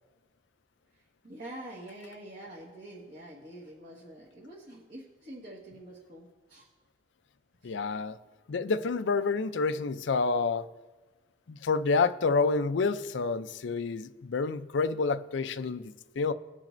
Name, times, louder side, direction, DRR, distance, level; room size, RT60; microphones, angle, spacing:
voice 1, 1.2-6.7 7.6-7.7, right 1 dB, 55° right, 1.6 m, -46 dB
voice 2, 7.6-8.2 8.5-10.7 11.5-16.3, left 4 dB, 80° left, 0.5 m, -28 dB
20.5 x 7.4 x 2.6 m
head